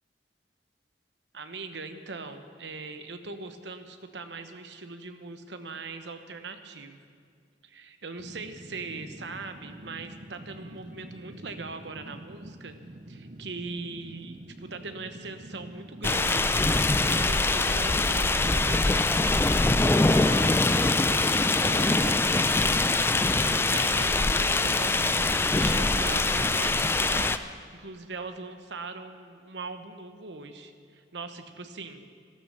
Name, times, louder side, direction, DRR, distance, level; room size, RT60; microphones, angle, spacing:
voice 1, 1.3-7.0 7.6-12.8 13.1-22.9 23.7-27.4 27.7-32.1, right 3 dB, 80° right, 8 dB, 1.1 m, -40 dB
Fire, 8.2-25.6, right 1 dB, 45° right, 0.7 m, -46 dB
sound 1, 16.0-27.4, left 2 dB, 15° left, 0.3 m, -23 dB
14.0 x 13.0 x 6.6 m, 2.2 s
head